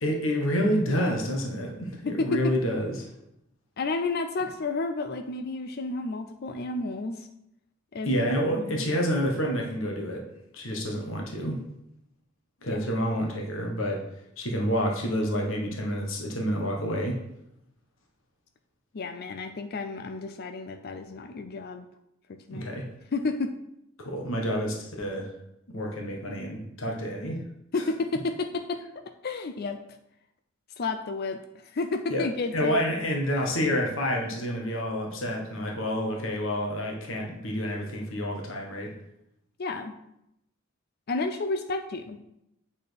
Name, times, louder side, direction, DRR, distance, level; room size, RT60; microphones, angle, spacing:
voice 1, 0.0-3.1 8.0-10.2 10.5-11.6 12.6-14.0 14.4-17.2 22.5-22.8 24.0-25.3 25.7-27.4 32.1-32.2 32.5-38.9, equal, 70° left, 0 dB, 1.4 m, -28 dB
voice 2, 2.1-2.6 3.8-7.3 7.9-8.1 8.5-8.9 12.7-12.8 18.9-21.9 22.5-22.7 23.1-23.5 27.7-28.8 29.2-29.8 30.8-32.8 39.6-39.9 41.1-42.2, left 3 dB, 50° left, 7 dB, 0.5 m, -31 dB
8.7 x 4.2 x 5.1 m, 0.82 s
head